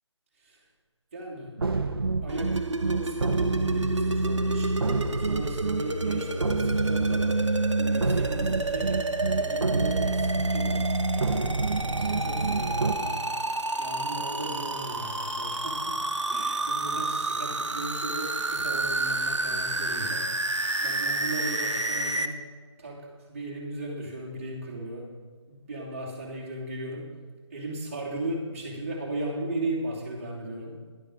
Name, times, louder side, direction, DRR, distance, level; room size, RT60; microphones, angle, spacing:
voice 1, 1.1-1.6 2.2-2.5 2.9-4.8 5.2-11.3 11.8-13.2 13.8-16.0 16.3-22.4 22.8-25.1 25.5-27.0 27.5-30.8, right 1 dB, 30° right, -2 dB, 2.6 m, -37 dB
sound 1, 1.6-12.9, right 3 dB, 50° right, 1.0 m, -27 dB
sound 2, 2.3-22.3, right 2 dB, 75° right, 1.3 m, -31 dB
11.5 x 10.0 x 6.2 m, 1.5 s
figure-of-eight pair, 160°, 15 cm